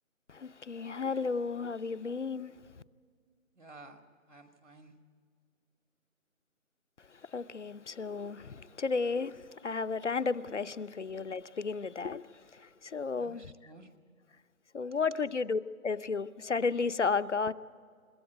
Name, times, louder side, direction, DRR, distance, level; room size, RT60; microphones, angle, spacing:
voice 1, 0.3-2.5 7.3-13.4 14.7-17.5, left 4 dB, 60° left, 0.7 m, -33 dB
voice 2, 3.6-4.0 4.3-5.0 13.2-13.9 14.9-15.2, right 2 dB, 55° right, 1.8 m, -53 dB
26.0 x 13.0 x 9.1 m
figure-of-eight pair, 175°, 42 cm